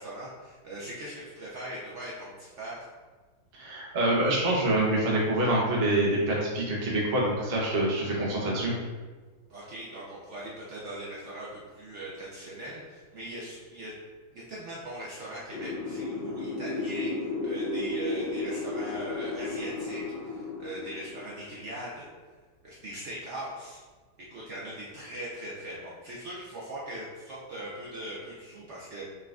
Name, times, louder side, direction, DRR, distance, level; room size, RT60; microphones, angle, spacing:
voice 1, 0.0-2.9 9.5-13.9 14.3-22.1 22.6-23.8 24.3-29.0, right 1 dB, 85° right, -6 dB, 0.6 m, -40 dB
voice 2, 3.5-8.7, right 1 dB, 45° right, -4 dB, 0.8 m, -26 dB
sound 1, 15.5-21.7, left 2 dB, 65° left, 1.5 m, -34 dB
5.6 x 3.8 x 2.4 m, 1.4 s
omnidirectional pair, 2.3 m